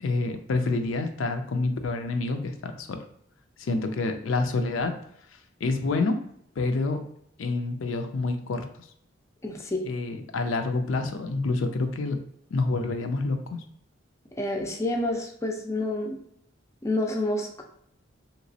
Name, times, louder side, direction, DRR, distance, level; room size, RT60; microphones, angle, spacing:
voice 1, 0.0-3.0 3.6-4.9 5.6-6.2 6.6-7.0 7.4-8.6 9.9-12.2 12.5-13.4, left 3 dB, 80° left, 6 dB, 0.4 m, -27 dB
voice 2, 9.4-9.9 14.4-16.2 16.8-17.6, left 1 dB, 15° left, 1 dB, 0.4 m, -28 dB
3.2 x 2.9 x 2.7 m, 0.70 s
head